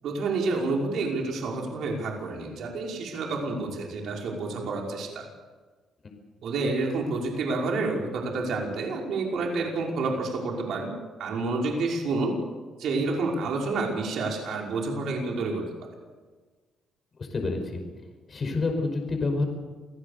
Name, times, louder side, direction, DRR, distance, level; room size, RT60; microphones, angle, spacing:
voice 1, 0.0-5.3 6.4-10.9 11.2-12.4 12.8-15.7, right 3 dB, 70° right, 0 dB, 5.6 m, -29 dB
voice 2, 17.2-17.8 18.3-19.4, left 3 dB, 40° left, 4 dB, 5.3 m, -28 dB
28.0 x 17.5 x 6.8 m, 1.3 s
cardioid pair, 90°, 0 cm